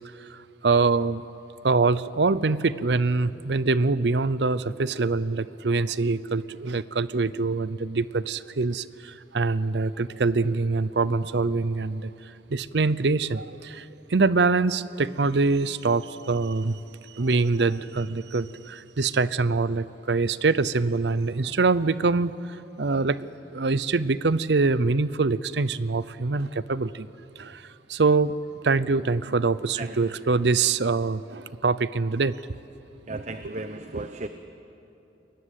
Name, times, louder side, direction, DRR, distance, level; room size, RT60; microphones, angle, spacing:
voice 1, 0.2-1.2 1.6-16.8 17.1-27.1 27.4-28.4 28.6-32.4 33.4-33.5 33.9-34.0, right 3 dB, 75° right, 16 dB, 0.7 m, -24 dB
voice 2, 33.1-34.3, right 2 dB, 40° right, 8 dB, 0.9 m, -35 dB
29.5 x 21.5 x 8.3 m, 2.9 s
head